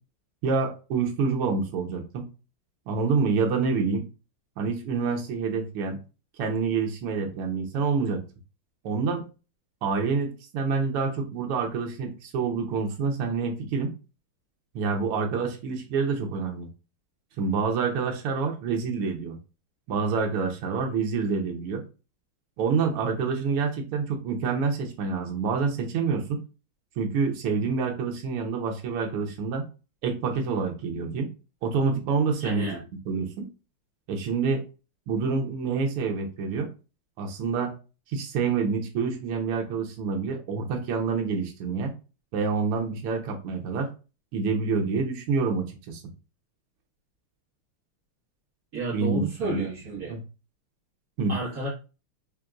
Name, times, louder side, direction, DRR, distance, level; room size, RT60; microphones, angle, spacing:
voice 1, 0.4-2.2 2.9-4.0 4.6-6.0 6.4-8.2 8.8-9.2 9.8-13.9 14.7-16.7 17.4-19.4 19.9-21.8 22.6-26.4 27.0-29.6 30.0-31.3 31.6-32.7 33.0-33.5 34.1-34.6 35.1-36.7 37.2-37.7 38.1-41.9 42.3-43.9 44.3-46.0 48.9-49.6 50.1-50.2 51.2-51.4, right 5 dB, 85° right, 1 dB, 1.7 m, -27 dB
voice 2, 32.4-32.8 48.7-50.2 51.3-51.7, right 3 dB, 45° right, -5 dB, 1.8 m, -31 dB
5.0 x 2.9 x 2.3 m, 0.32 s
omnidirectional pair, 2.4 m